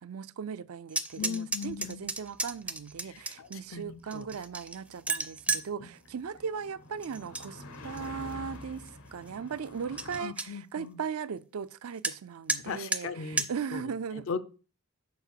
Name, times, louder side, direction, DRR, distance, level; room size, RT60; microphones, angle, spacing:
voice 1, 0.0-14.3, right 6 dB, 75° right, 0.5 m, -38 dB
sound 1, 0.9-3.6 4.1-5.7 7.0-7.5 7.8-8.3 8.9-9.0 9.3-9.4 9.7-9.8 10.0-10.5 12.0-12.2 12.5-12.6 12.9-13.0 13.4-13.5, right 3 dB, 5° right, 0.4 m, -32 dB
voice 2, 1.2-2.1 3.0-4.3 5.8-5.9 10.2-11.0 12.6-13.8 14.1-14.4, left 5 dB, 60° left, 0.5 m, -38 dB
sound 2, 1.7-10.2, left 2 dB, 85° left, 1.3 m, -49 dB
6.9 x 4.9 x 6.4 m
head